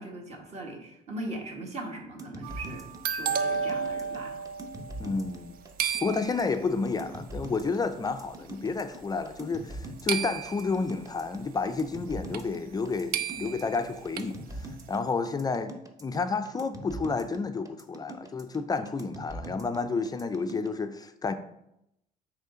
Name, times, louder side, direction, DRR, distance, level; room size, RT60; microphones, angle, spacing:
voice 1, 0.0-4.4, right 1 dB, 40° right, 1.6 m, -40 dB
sound 1, 2.2-20.7, right 1 dB, 20° right, 0.8 m, -43 dB
sound 2, 2.4-5.5 5.8-6.7 7.6-7.7 8.3-8.6 10.1-10.9 12.3-12.4 12.7-12.8 13.1-14.3, right 7 dB, 60° right, 0.5 m, -32 dB
voice 2, 5.0-5.6 6.0-15.7 16.0-21.3, left 4 dB, 25° left, 0.4 m, -30 dB
9.1 x 3.2 x 3.8 m
cardioid pair, 110°, 17 cm